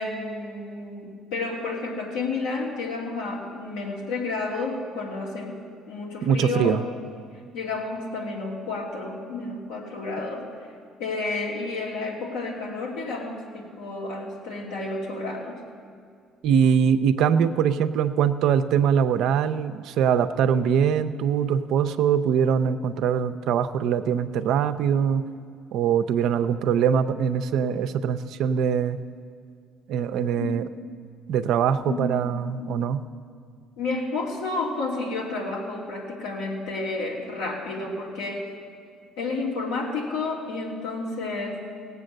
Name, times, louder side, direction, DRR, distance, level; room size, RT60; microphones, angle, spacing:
voice 1, 0.0-6.9 7.5-10.5 11.0-15.6 30.3-30.9 31.9-32.7 33.8-38.5 39.2-41.7, left 3 dB, 85° left, -2 dB, 2.5 m, -31 dB
voice 2, 6.2-6.8 16.4-25.2 25.7-29.0 29.9-30.6 31.3-33.0, right 7 dB, 70° right, 10 dB, 0.6 m, -22 dB
17.5 x 8.2 x 6.5 m, 2.2 s
supercardioid pair, 70°, 0 cm